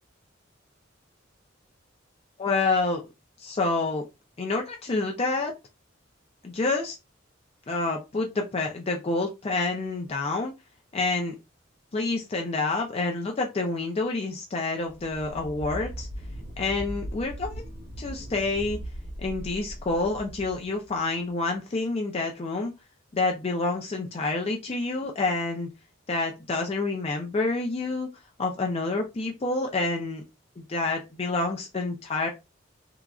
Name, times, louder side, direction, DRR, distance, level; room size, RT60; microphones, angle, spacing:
voice 1, 2.4-3.0 3.4-4.0 4.4-5.5 6.4-7.0 7.7-10.5 10.9-11.3 11.9-16.1 16.6-17.6 18.0-18.8 19.2-22.7 23.1-25.7 26.1-28.1 28.4-30.2 30.6-32.3, left 3 dB, 30° left, 0.4 m, -28 dB
sound 1, 14.9-21.3, equal, 45° right, 1.0 m, -39 dB
3.0 x 2.4 x 2.3 m
head